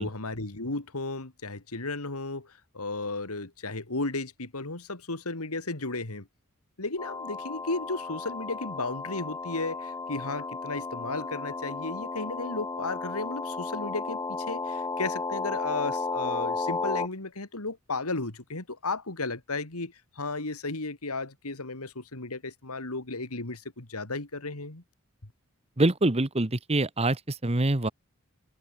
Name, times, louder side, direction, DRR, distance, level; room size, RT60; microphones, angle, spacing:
voice 1, 0.0-6.3 6.8-24.8, left 3 dB, 85° left, 2.7 m, -34 dB
sound 1, 7.0-17.1, left 3 dB, 15° left, 0.6 m, -34 dB
voice 2, 25.8-27.9, right 2 dB, 30° right, 1.3 m, -25 dB
head